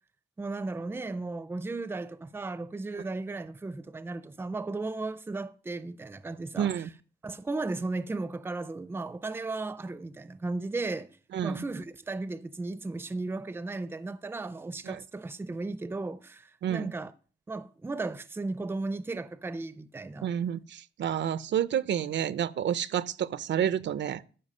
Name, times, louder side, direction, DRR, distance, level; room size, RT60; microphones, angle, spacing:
voice 1, 0.4-6.7 7.2-11.1 11.4-17.1 17.5-20.3, right 3 dB, 10° right, 0.4 m, -35 dB
voice 2, 6.6-6.9 11.3-11.6 14.8-15.0 16.6-16.9 20.2-24.2, right 9 dB, 80° right, 0.5 m, -29 dB
13.0 x 5.5 x 5.4 m
wide cardioid pair, 160°, 18 cm